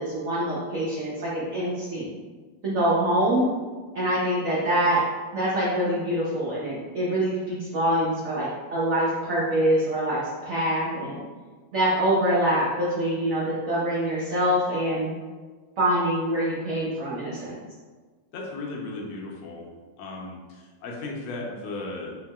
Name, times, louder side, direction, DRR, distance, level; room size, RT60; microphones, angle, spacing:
voice 1, 0.0-2.1 2.6-3.5 3.9-5.0 5.3-11.1 11.7-15.1 15.8-17.6, right 1 dB, 85° right, -8 dB, 0.7 m, -25 dB
voice 2, 18.3-19.7 20.0-22.2, left 2 dB, 85° left, -1 dB, 1.4 m, -36 dB
4.5 x 2.0 x 2.2 m, 1.4 s
omnidirectional pair, 2.2 m